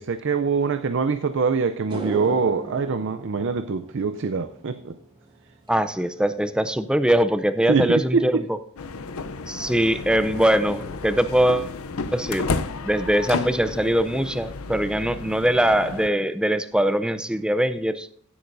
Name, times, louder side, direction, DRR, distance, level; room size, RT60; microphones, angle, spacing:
voice 1, 0.0-5.0 7.7-8.5, right 4 dB, 60° right, 10 dB, 0.5 m, -24 dB
sound 1, 1.2-1.3 1.7-10.2 10.5-10.9 14.5-14.6 16.3-16.4 16.7-16.8 17.1-17.6, right 3 dB, 25° right, 2.8 m, -41 dB
voice 2, 5.7-8.4 9.5-11.7 12.1-12.5 12.8-18.1, right 1 dB, 5° right, 11 dB, 0.4 m, -22 dB
sound 2, 8.8-16.1, left 4 dB, 80° left, 0.6 m, -32 dB
16.0 x 8.6 x 2.6 m, 0.62 s
head